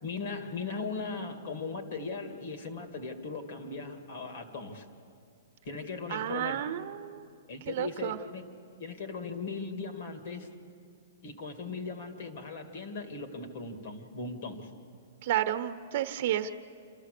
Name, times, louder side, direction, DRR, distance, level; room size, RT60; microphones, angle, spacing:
voice 1, 0.0-4.9 5.6-6.7 7.5-8.4 8.8-10.5 11.2-14.7, left 4 dB, 60° left, 5 dB, 2.4 m, -38 dB
voice 2, 6.1-7.3 7.6-8.2 15.2-16.5, right 12 dB, 55° right, 9 dB, 0.9 m, -31 dB
28.0 x 13.5 x 6.7 m, 2.4 s
hypercardioid pair, 145°, 0 cm